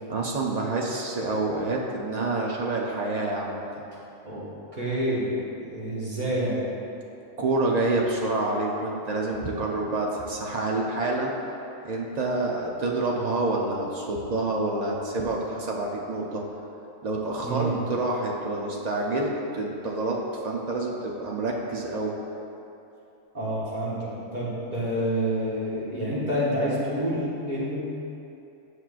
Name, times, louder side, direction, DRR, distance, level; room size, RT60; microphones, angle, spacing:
voice 1, 0.1-3.7 7.4-11.3 11.8-16.4 17.0-22.1, right 2 dB, 70° right, -2 dB, 0.4 m, -27 dB
voice 2, 4.7-5.3 5.6-6.6 17.4-17.8 23.3-27.8, right 1 dB, 35° right, -8 dB, 1.5 m, -28 dB
9.6 x 5.9 x 2.4 m, 2.8 s
omnidirectional pair, 1.5 m